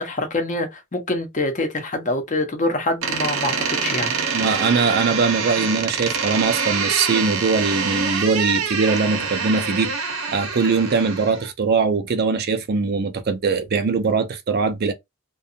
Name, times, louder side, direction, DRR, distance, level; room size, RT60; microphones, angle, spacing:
voice 1, 0.0-4.1, left 2 dB, 35° left, 0.7 m, -25 dB
Door, 3.0-11.5, right 5 dB, 90° right, 0.8 m, -25 dB
voice 2, 4.3-14.9, right 4 dB, 50° right, 0.5 m, -21 dB
2.6 x 2.3 x 2.6 m
head